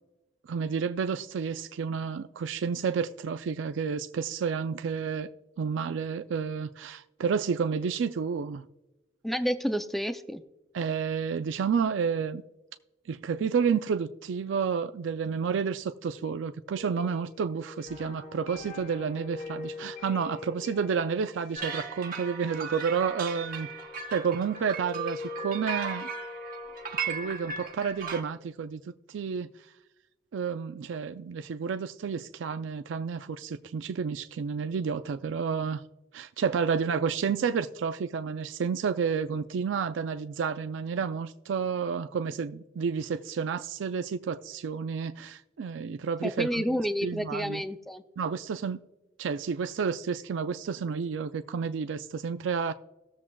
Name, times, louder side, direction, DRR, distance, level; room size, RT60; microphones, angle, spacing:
voice 1, 0.4-5.3 5.6-8.7 10.7-12.4 13.1-23.7 24.1-26.1 27.0-28.8 29.1-29.5 30.3-35.8 36.1-47.6 48.2-48.8 49.2-52.7, right 6 dB, 85° right, 0.4 m, -30 dB
voice 2, 9.2-10.4 46.2-48.0, equal, ahead, 0.4 m, -30 dB
sound 1, 16.8-22.6 23.1-27.4, left 4 dB, 40° left, 0.8 m, -43 dB
sound 2, 21.5-28.2, right 5 dB, 50° right, 0.9 m, -37 dB
18.5 x 7.3 x 2.3 m
head